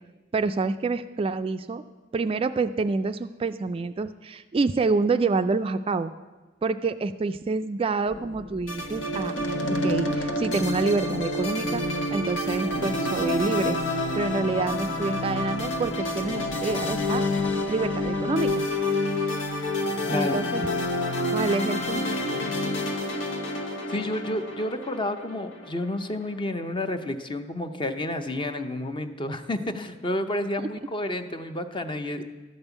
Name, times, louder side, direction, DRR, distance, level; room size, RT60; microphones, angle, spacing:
voice 1, 0.3-1.8 2.1-6.1 6.6-9.3 9.7-13.8 14.1-17.2 17.7-18.7 20.1-20.7 21.3-22.0 30.6-30.7, right 3 dB, 30° right, 10 dB, 0.3 m, -27 dB
sound 1, 8.1-18.7, left 2 dB, 50° left, 1.1 m, -44 dB
sound 2, 8.7-26.0, left 1 dB, 85° left, 1.2 m, -28 dB
voice 2, 20.1-20.4 23.9-32.2, left 1 dB, 25° left, 9 dB, 0.7 m, -30 dB
12.5 x 5.4 x 8.1 m, 1.2 s
head